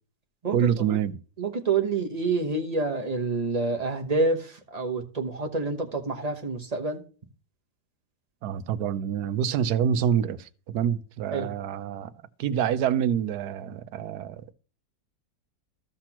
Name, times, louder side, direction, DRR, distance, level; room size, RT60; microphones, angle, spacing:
voice 1, 0.5-1.2 8.4-12.1 12.4-14.5, right 9 dB, 75° right, 1.2 m, -26 dB
voice 2, 1.4-7.0 11.3-11.5, right 3 dB, 30° right, 0.9 m, -27 dB
14.5 x 5.9 x 2.9 m
omnidirectional pair, 1.7 m